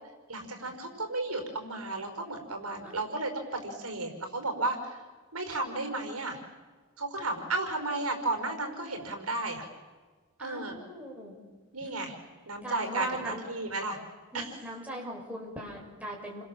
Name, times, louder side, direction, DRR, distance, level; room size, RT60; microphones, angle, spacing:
voice 1, 0.3-5.0 5.3-6.4 7.0-9.7 10.4-10.8 11.7-12.2 12.5-14.0 14.3-14.5, right 2 dB, 80° right, 5 dB, 5.3 m, -33 dB
voice 2, 10.4-11.4 12.6-13.4 14.3-16.4, right 1 dB, 5° right, -1 dB, 6.3 m, -40 dB
29.5 x 26.0 x 7.6 m, 1.4 s
head